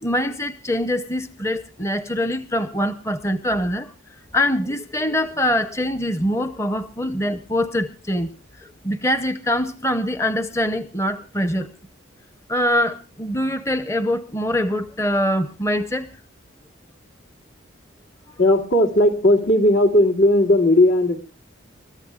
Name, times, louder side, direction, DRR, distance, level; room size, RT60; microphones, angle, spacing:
voice 1, 0.0-3.9 4.3-11.7 12.5-16.1, left 1 dB, 15° left, 10 dB, 0.7 m, -24 dB
voice 2, 18.4-21.2, left 1 dB, 75° left, 3 dB, 2.5 m, -16 dB
30.0 x 14.0 x 2.3 m, 0.32 s
head